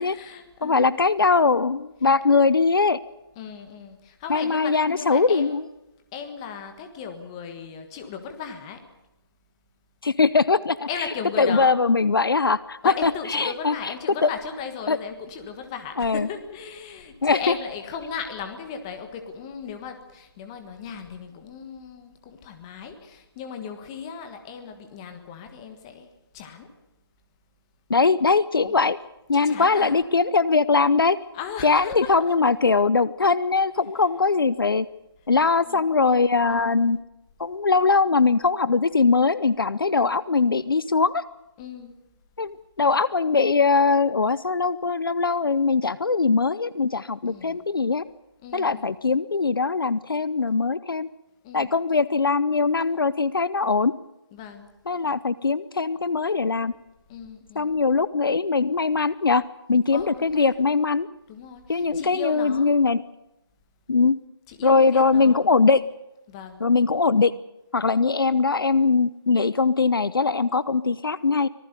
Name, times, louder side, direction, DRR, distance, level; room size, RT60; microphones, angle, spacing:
voice 1, 0.0-1.0 2.2-2.3 3.3-5.6 6.1-8.8 10.9-11.7 12.8-26.7 28.6-28.8 29.3-30.0 31.3-32.1 35.4-35.9 36.4-37.0 41.6-42.0 47.3-47.6 48.4-48.9 51.4-51.7 54.3-54.7 57.1-57.7 59.9-60.6 61.3-62.7 64.5-65.6 66.3-66.7 67.9-68.0, left 6 dB, 10° left, 6 dB, 1.5 m, -37 dB
voice 2, 0.6-3.0 4.3-5.6 10.0-10.9 11.4-13.7 14.2-14.3 14.9-15.0 16.0-16.3 17.2-17.4 27.9-29.0 29.3-31.2 31.6-34.9 35.3-37.0 37.4-41.2 42.4-48.0 48.5-51.1 51.5-53.9 54.9-56.7 57.6-61.1 61.7-63.0 63.9-64.2 64.6-65.8 66.6-67.3 67.7-71.5, left 4 dB, 55° left, 18 dB, 0.8 m, -21 dB
25.5 x 19.5 x 6.8 m, 0.93 s
figure-of-eight pair, 170°, 14 cm